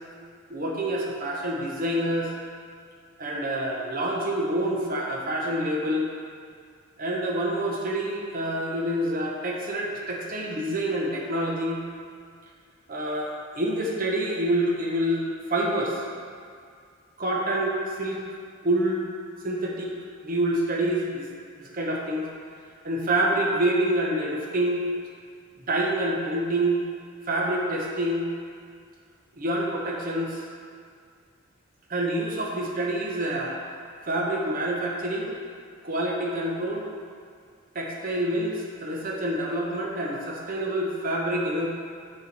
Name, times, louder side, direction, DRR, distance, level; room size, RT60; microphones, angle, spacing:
voice 1, 0.5-2.3 3.2-6.1 7.0-11.8 12.9-16.0 17.2-18.2 18.6-19.0 19.4-19.9 20.2-21.3 21.6-22.3 22.8-24.8 25.6-26.8 27.3-28.3 29.4-30.4 31.9-33.6 34.1-35.3 35.8-36.9 37.7-41.7, right 1 dB, 45° right, -1 dB, 0.9 m, -27 dB
6.6 x 5.0 x 4.2 m, 2.2 s
head